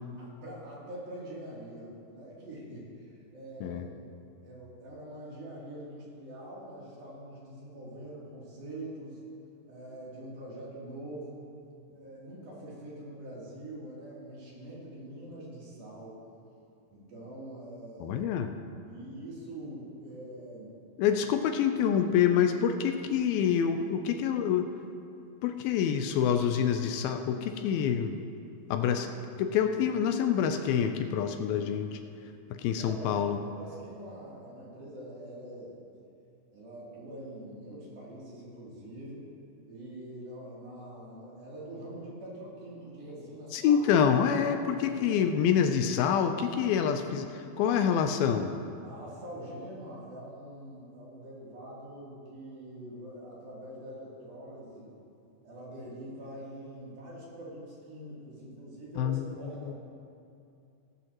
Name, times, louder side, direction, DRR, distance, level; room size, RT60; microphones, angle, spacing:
voice 1, 0.2-4.0 4.4-9.2 9.7-11.5 11.9-16.2 16.9-18.2 18.9-20.7 32.8-35.8 36.5-39.3 39.7-43.9 44.7-45.2 48.8-55.0 55.4-59.7, right 1 dB, 70° right, -7 dB, 4.9 m, -44 dB
voice 2, 18.0-18.5 21.0-24.7 25.4-28.1 28.7-29.1 29.4-32.0 32.5-33.4 43.5-48.5 59.0-59.3 59.7-59.8, left 8 dB, 80° left, 6 dB, 2.4 m, -26 dB
17.5 x 13.0 x 3.0 m, 2.5 s
omnidirectional pair, 4.4 m